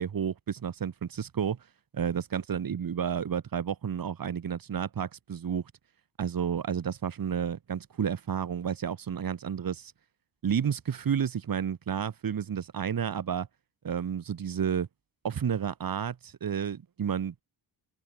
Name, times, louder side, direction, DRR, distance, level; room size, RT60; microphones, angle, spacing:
voice 1, 0.0-1.6 1.9-5.6 6.2-9.9 10.4-13.5 13.8-14.9 15.2-17.3, right 8 dB, 45° right, 4.3 m, -31 dB
wide cardioid pair, 170°, 46 cm